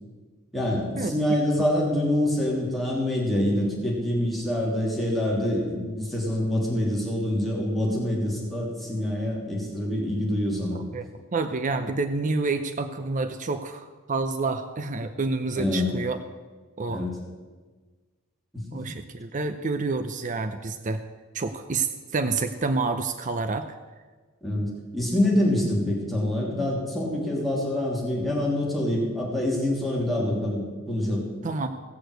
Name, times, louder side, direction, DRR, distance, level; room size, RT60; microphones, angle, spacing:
voice 1, 0.5-10.8 15.6-15.9 16.9-17.2 18.5-18.6 24.4-31.3, left 1 dB, ahead, -4 dB, 3.1 m, -26 dB
voice 2, 10.7-16.2 16.8-17.1 18.7-21.0 21.3-21.9 22.1-23.8 31.4-31.7, right 3 dB, 40° right, 8 dB, 0.6 m, -28 dB
17.0 x 6.7 x 7.9 m, 1.4 s
head